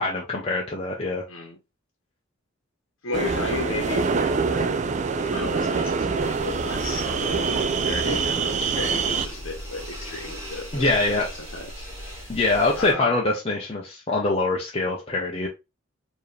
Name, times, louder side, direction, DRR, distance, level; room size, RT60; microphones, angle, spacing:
voice 1, 0.0-1.2 10.7-11.2 12.3-15.5, left 2 dB, 30° left, 0.7 m, -24 dB
voice 2, 1.3-1.6 3.0-4.9 5.2-11.9 12.2-12.3 12.8-13.1, left 2 dB, 75° left, 0.9 m, -34 dB
sound 1, 3.1-9.3, right 5 dB, 35° right, 0.3 m, -25 dB
sound 2, 6.2-12.9, equal, 15° right, 1.9 m, -39 dB
4.5 x 2.9 x 3.2 m
head